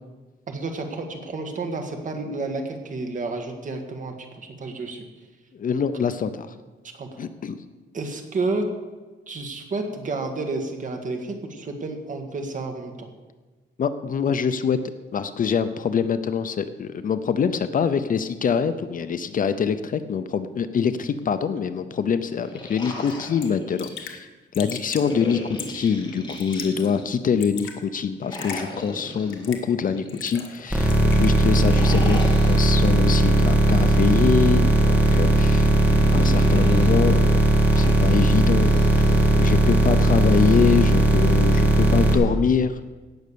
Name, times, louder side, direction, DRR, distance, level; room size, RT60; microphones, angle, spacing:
voice 1, 0.5-5.1 6.9-7.2 7.9-8.6 9.3-13.1, right 3 dB, 40° right, 4 dB, 1.7 m, -30 dB
voice 2, 5.5-6.5 7.2-7.6 13.8-14.8 15.1-24.3 24.5-35.7 36.1-37.4 37.7-42.8, left 6 dB, 45° left, 11 dB, 0.6 m, -24 dB
sound 1, 22.2-24.1 24.9-27.3 28.2-30.7 31.5-33.1 34.1-36.9 37.6-39.3, left 1 dB, 20° left, 2.2 m, -37 dB
Raindrop / Drip, 23.1-23.2 23.4-23.5 23.8-24.2 24.5-25.1 25.6-25.9 26.3-26.9 27.2-27.8 28.3-28.6 29.3-29.7 30.1-30.6 30.9-31.3, left 7 dB, 75° left, 1.7 m, -37 dB
sound 2, 30.7-42.1, right 1 dB, 5° right, 2.2 m, -18 dB
17.5 x 6.5 x 6.9 m, 1.3 s
wide cardioid pair, 170°, 20 cm